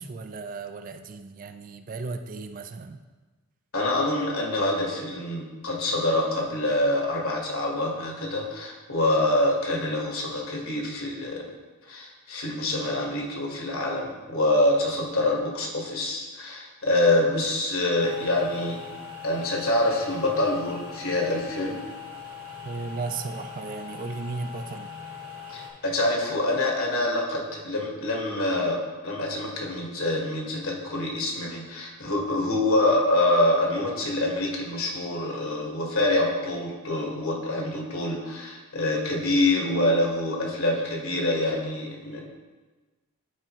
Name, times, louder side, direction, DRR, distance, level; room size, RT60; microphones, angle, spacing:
voice 1, 0.0-3.0 22.6-24.9, right 4 dB, 35° right, 8 dB, 0.3 m, -35 dB
voice 2, 3.7-11.4 11.9-18.8 19.2-21.8 25.5-42.3, left 1 dB, 65° left, -1 dB, 1.5 m, -26 dB
sound 1, 18.0-25.7, left 6 dB, 60° right, 1.8 m, -41 dB
11.0 x 4.6 x 3.0 m, 1.3 s
head